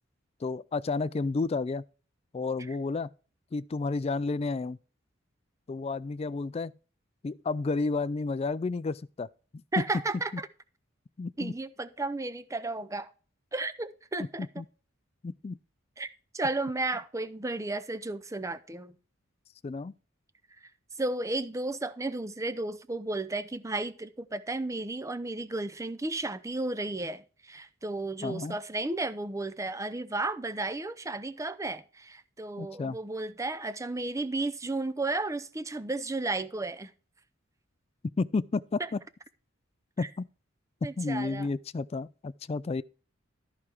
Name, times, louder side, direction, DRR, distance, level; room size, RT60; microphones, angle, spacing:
voice 1, 0.4-1.8 2.3-3.1 3.5-4.8 5.7-6.7 7.2-9.3 9.8-9.9 11.2-11.5 14.4-14.6 15.2-15.6 19.6-19.9 28.2-28.6 32.6-33.0 38.2-39.0 40.0-40.3 41.0-42.8, left 3 dB, 30° left, 0.3 m, -31 dB
voice 2, 9.7-10.5 11.4-13.1 13.5-14.5 16.0-16.1 16.3-19.0 21.0-36.9 38.8-38.9 40.0-40.1 40.8-41.5, right 2 dB, 15° right, 0.6 m, -33 dB
13.0 x 4.9 x 4.5 m
head